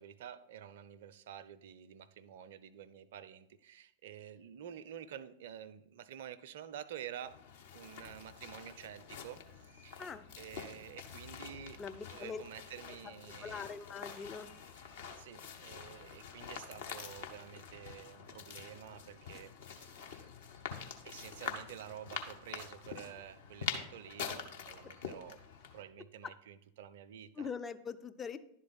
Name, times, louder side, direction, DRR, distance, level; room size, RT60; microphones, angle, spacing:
voice 1, 0.0-7.4 7.7-10.0 10.4-13.7 14.8-20.2 21.0-25.4 25.7-27.5, right 10 dB, 55° right, 0.4 m, -50 dB
sound 1, 7.2-25.8, left 6 dB, 55° left, 0.8 m, -46 dB
voice 2, 11.8-12.4 13.4-14.5 27.4-28.4, left 5 dB, 20° left, 0.4 m, -42 dB
11.0 x 3.7 x 4.1 m
figure-of-eight pair, 90°, 0 cm